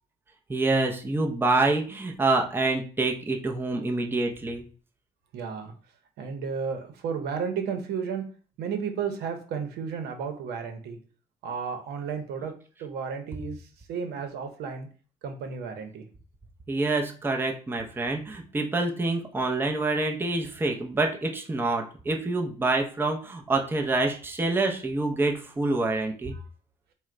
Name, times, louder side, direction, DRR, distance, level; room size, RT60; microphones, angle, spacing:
voice 1, 0.5-4.6 16.7-26.3, right 2 dB, 15° right, 2 dB, 0.6 m, -26 dB
voice 2, 5.3-5.7 6.2-8.2 8.6-11.0 11.4-12.5 12.8-13.6 13.9-14.9 15.2-16.0 26.3-26.4, right 6 dB, 75° right, 6 dB, 0.8 m, -33 dB
4.3 x 2.2 x 3.7 m, 0.40 s
cardioid pair, 110°, 17 cm